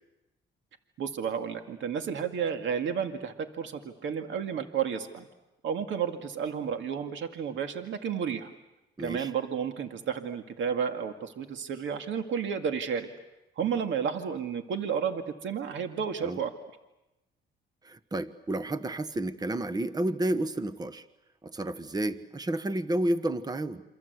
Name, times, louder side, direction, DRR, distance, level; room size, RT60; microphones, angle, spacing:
voice 1, 1.0-5.3 5.6-8.5 9.0-13.1 13.6-16.5, right 7 dB, 70° right, 7 dB, 2.2 m, -32 dB
voice 2, 9.0-9.3 16.2-16.4 17.8-21.0 21.4-23.8, right 1 dB, 20° right, 13 dB, 1.2 m, -31 dB
28.5 x 25.5 x 8.2 m, 0.96 s
cardioid pair, 90°, 20 cm